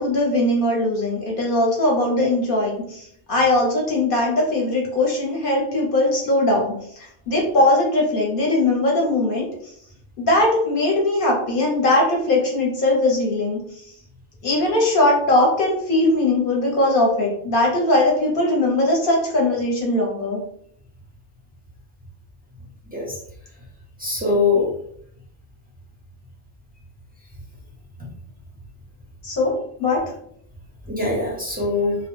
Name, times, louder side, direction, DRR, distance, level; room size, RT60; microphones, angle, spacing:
voice 1, 0.0-3.0 3.3-6.7 7.3-9.5 10.2-13.6 14.4-20.4 29.2-29.5 29.8-30.0, left 2 dB, 50° left, -2 dB, 0.8 m, -20 dB
voice 2, 24.0-24.7 30.9-32.0, left 3 dB, 15° right, -6 dB, 0.4 m, -22 dB
2.2 x 2.2 x 3.0 m, 0.68 s
omnidirectional pair, 1.3 m